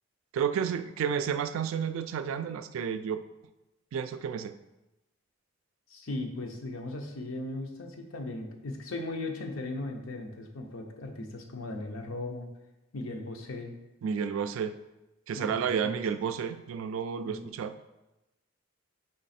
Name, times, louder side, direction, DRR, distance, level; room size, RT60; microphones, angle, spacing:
voice 1, 0.3-3.2 3.9-4.5 14.0-14.7 15.3-17.7, right 7 dB, 75° right, 10 dB, 0.3 m, -31 dB
voice 2, 5.9-12.5 12.9-13.8 15.3-15.5 15.7-15.9 17.2-17.6, left 2 dB, 80° left, 3 dB, 0.7 m, -37 dB
3.9 x 3.2 x 4.2 m, 0.99 s
head